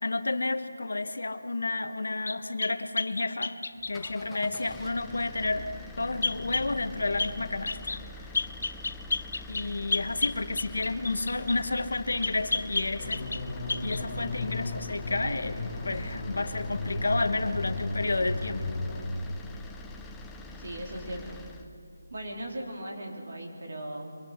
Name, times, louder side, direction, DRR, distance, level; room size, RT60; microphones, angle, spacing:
voice 1, 0.0-3.6 3.9-5.7 6.0-8.3 9.5-13.3 13.8-15.6 15.8-18.8, left 2 dB, 75° left, 10 dB, 1.3 m, -31 dB
sound 1, 2.3-4.2 6.2-6.7 7.2-7.4 7.7-8.0 8.3-11.6 12.2-13.4 13.7-14.0, left 3 dB, 50° left, 0.6 m, -31 dB
sound 2, 3.8-21.7, left 2 dB, 5° left, 0.6 m, -44 dB
sound 3, 13.0-19.1, left 2 dB, 25° left, 2.7 m, -35 dB
voice 2, 20.6-21.5 22.1-24.2, right 1 dB, 50° right, -1 dB, 3.8 m, -38 dB
25.5 x 22.0 x 5.9 m, 2.6 s
figure-of-eight pair, 180°, 0 cm